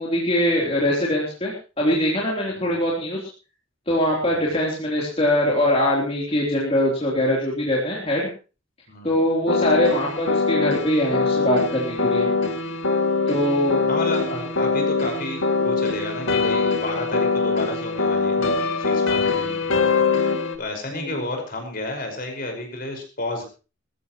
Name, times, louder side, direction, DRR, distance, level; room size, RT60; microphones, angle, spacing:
voice 1, 0.0-3.2 3.9-8.3 9.0-12.3 13.3-13.8 20.9-21.1, left 1 dB, 30° left, -4 dB, 3.7 m, -22 dB
sound 1, 9.5-20.6, left 4 dB, 80° left, 1.8 m, -23 dB
voice 2, 13.9-19.8 20.6-23.4, left 2 dB, 45° left, 2 dB, 5.5 m, -31 dB
22.0 x 14.5 x 3.1 m, 0.34 s
head